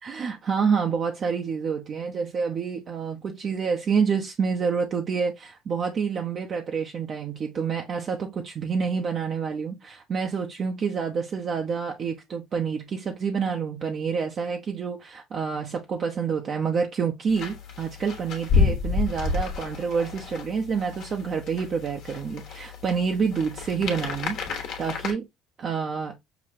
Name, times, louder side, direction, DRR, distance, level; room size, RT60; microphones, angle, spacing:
voice 1, 0.0-25.3 25.6-26.2, right 6 dB, 45° right, 0.6 m, -28 dB
sound 1, 17.3-25.1, left 5 dB, 60° left, 1.2 m, -30 dB
5.9 x 2.2 x 2.6 m
supercardioid pair, 85°, 0 cm